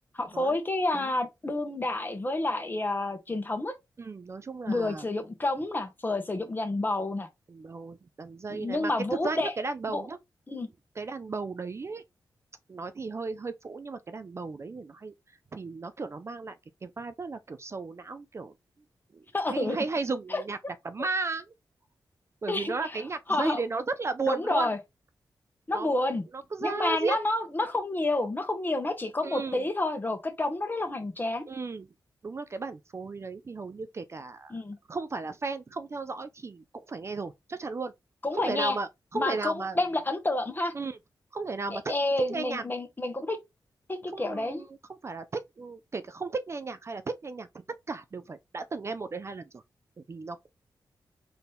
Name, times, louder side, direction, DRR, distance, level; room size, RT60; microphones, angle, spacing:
voice 1, 0.2-3.7 4.7-7.3 8.5-9.5 9.9-10.0 10.5-10.7 19.3-19.8 20.3-20.4 22.5-23.0 23.3-23.6 24.3-24.8 25.7-26.2 26.6-31.4 34.5-34.8 38.2-38.8 39.1-40.7 41.7-43.4 43.9-44.6, left 2 dB, 25° left, 1.0 m, -29 dB
voice 2, 4.0-5.0 7.5-8.9 9.2-10.2 11.0-12.0 12.7-15.1 15.5-16.6 16.8-18.5 19.1-19.2 19.5-20.6 20.8-21.5 22.4-24.7 25.7-25.9 26.3-27.2 29.2-29.6 31.5-31.9 32.2-34.5 34.9-37.9 38.3-39.8 40.7-41.0 41.3-41.9 42.3-42.6 44.1-47.5 47.9-49.6 50.1-50.5, right 4 dB, 35° right, 0.4 m, -35 dB
4.1 x 2.8 x 3.4 m
cardioid pair, 85°, 8 cm